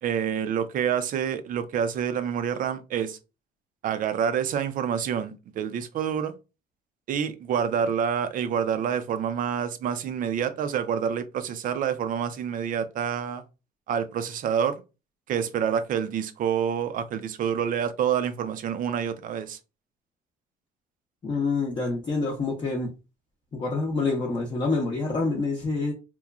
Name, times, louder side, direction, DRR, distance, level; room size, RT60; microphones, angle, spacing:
voice 1, 0.0-3.2 3.8-6.4 7.1-13.4 13.9-14.7 15.3-19.6, right 8 dB, 55° right, 0.4 m, -27 dB
voice 2, 21.2-22.9 23.5-25.9, left 3 dB, 30° left, 0.6 m, -27 dB
2.9 x 2.1 x 2.3 m
cardioid pair, 110°, 17 cm